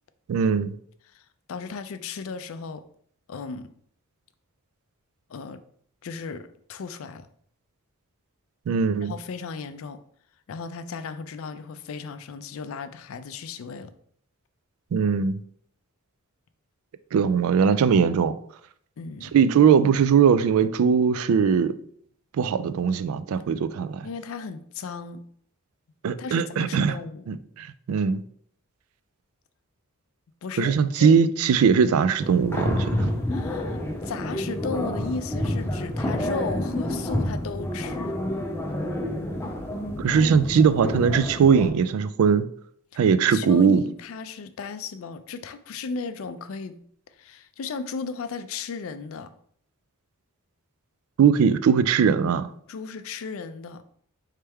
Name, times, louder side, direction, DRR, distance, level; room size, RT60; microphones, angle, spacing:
voice 1, 0.3-0.7 8.7-9.1 14.9-15.3 17.1-18.4 19.3-21.7 22.3-24.1 26.0-27.0 27.3-28.2 30.6-33.1 40.0-42.5 43.0-43.8 51.2-52.5, right 6 dB, 75° right, 0.3 m, -20 dB
voice 2, 1.5-2.8 3.3-3.7 5.3-5.6 6.0-7.3 9.0-10.0 10.5-13.9 19.0-19.3 24.0-25.2 26.2-27.3 30.4-31.1 33.3-38.2 42.9-46.8 47.2-49.3 52.7-53.8, left 5 dB, 65° left, 0.4 m, -35 dB
sound 1, 32.2-41.7, left 1 dB, 10° left, 0.5 m, -29 dB
4.4 x 3.2 x 3.4 m
head